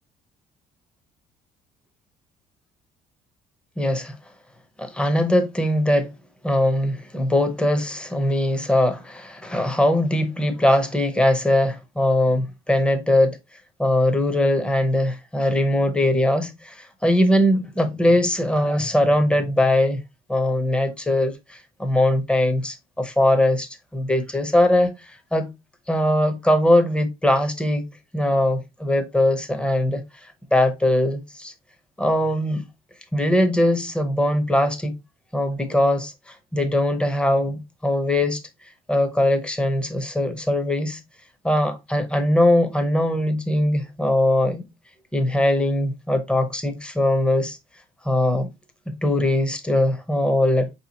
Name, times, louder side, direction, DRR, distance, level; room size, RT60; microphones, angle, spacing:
voice 1, 3.8-4.2 4.8-6.1 6.4-13.4 13.8-20.0 20.3-25.5 25.9-27.8 28.1-30.0 30.5-31.5 32.0-32.6 33.1-34.9 35.3-38.4 38.9-41.0 41.4-44.6 45.1-47.6 48.0-48.5 48.9-50.7, left 1 dB, 5° left, 0.6 m, -21 dB
4.6 x 2.8 x 2.8 m
cardioid pair, 110°, 17 cm